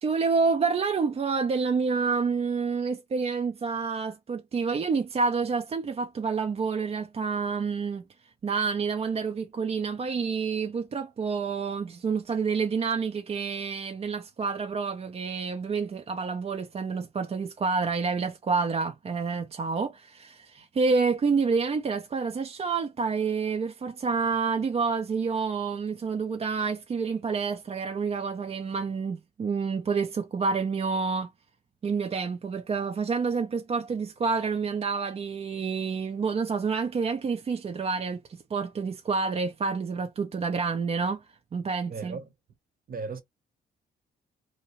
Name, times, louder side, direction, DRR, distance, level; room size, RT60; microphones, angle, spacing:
voice 1, 0.0-8.0 8.4-31.3 31.8-42.2, right 5 dB, 30° right, 0.4 m, -28 dB
voice 2, 41.9-42.2 42.9-43.2, right 4 dB, 45° right, 0.8 m, -35 dB
2.7 x 2.1 x 2.9 m
cardioid pair, 90°, 20 cm